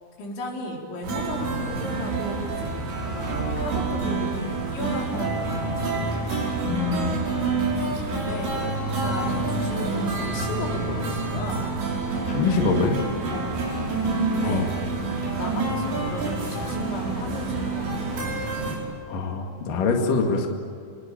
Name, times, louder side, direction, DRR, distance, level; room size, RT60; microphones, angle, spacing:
voice 1, 0.2-2.7 3.0-4.3 4.7-5.9 8.1-8.6 8.9-11.7 13.3-13.6 14.2-14.7 15.4-18.2, left 2 dB, 75° left, -1 dB, 6.5 m, -34 dB
sound 1, 1.0-18.8, right 3 dB, 65° right, 7.9 m, -27 dB
voice 2, 6.7-7.2 12.3-13.0 14.4-14.6 18.7-18.8 19.1-20.5, left 4 dB, 55° left, 2 dB, 3.3 m, -24 dB
27.5 x 23.0 x 9.0 m, 2.4 s
omnidirectional pair, 5.4 m